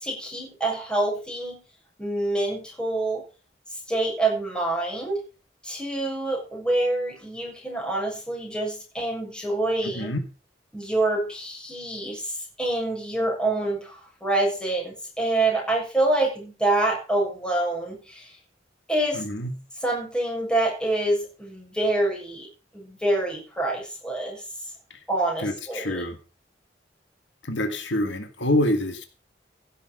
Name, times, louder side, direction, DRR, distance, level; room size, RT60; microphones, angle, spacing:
voice 1, 0.0-1.6 2.0-3.2 3.9-5.2 5.6-10.1 10.7-12.3 12.6-18.3 18.9-19.2 19.8-22.5 22.7-24.4 25.1-26.0, right 2 dB, 5° left, -2 dB, 7.1 m, -26 dB
voice 2, 9.8-10.2 19.1-19.6 24.9-25.0 25.4-26.2 27.4-29.0, left 1 dB, 85° left, 7 dB, 1.9 m, -26 dB
16.0 x 6.9 x 6.4 m, 0.35 s
head